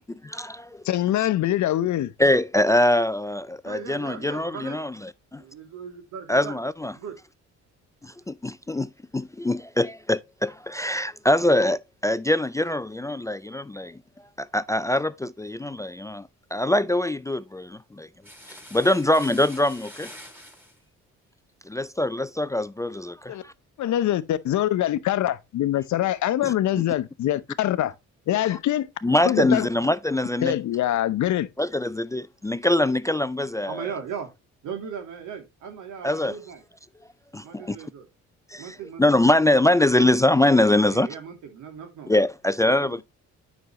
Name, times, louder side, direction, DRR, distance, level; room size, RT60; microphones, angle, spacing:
voice 1, 0.3-0.8 2.2-5.4 6.3-6.9 8.0-14.0 14.4-18.1 18.5-20.1 21.7-23.5 26.4-26.5 29.0-30.6 31.6-33.9 36.0-36.3 37.3-37.8 38.5-41.1 42.1-43.0, left 1 dB, 10° left, 0.3 m, -23 dB
voice 2, 0.8-2.1 23.3-23.4 23.8-27.9 28.3-28.9 29.3-29.7 30.4-31.5, left 12 dB, 70° left, 0.8 m, -24 dB
voice 3, 3.6-4.8 5.4-6.6 6.9-7.1 33.7-34.3 34.6-36.6 37.4-38.1 38.6-39.0 40.7-42.1 42.6-43.0, right 7 dB, 85° right, 2.7 m, -38 dB
sound 1, 18.2-20.8, equal, 5° right, 2.8 m, -45 dB
9.3 x 6.2 x 3.0 m
cardioid pair, 90°, 30 cm